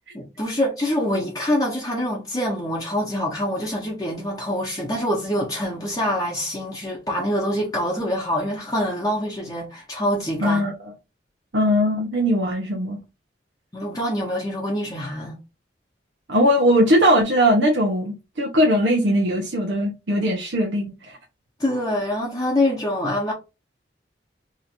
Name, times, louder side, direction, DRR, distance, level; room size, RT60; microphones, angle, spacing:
voice 1, 0.1-10.6 13.7-15.4 21.6-23.3, left 1 dB, 20° left, 0.8 m, -25 dB
voice 2, 10.4-10.9 11.5-13.0 16.3-21.2, equal, 80° right, 0.8 m, -20 dB
2.9 x 2.5 x 4.3 m
head